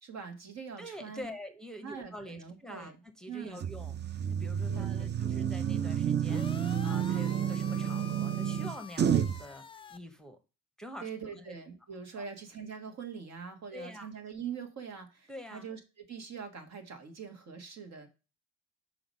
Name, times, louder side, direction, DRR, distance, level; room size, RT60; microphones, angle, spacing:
voice 1, 0.0-1.3 1.8-3.0 3.3-3.6 4.7-5.2 11.0-18.1, right 6 dB, 60° right, 5 dB, 1.7 m, -43 dB
voice 2, 0.8-10.4 10.8-11.1 11.4-11.5 12.1-12.3 13.7-14.1 15.3-15.7, equal, ahead, 6 dB, 0.9 m, -46 dB
sound 1, 3.6-9.4, right 9 dB, 35° right, 0.6 m, -30 dB
sound 2, 6.2-10.0, left 5 dB, 20° left, 0.4 m, -47 dB
5.8 x 5.0 x 5.3 m, 0.31 s
cardioid pair, 90°, 30 cm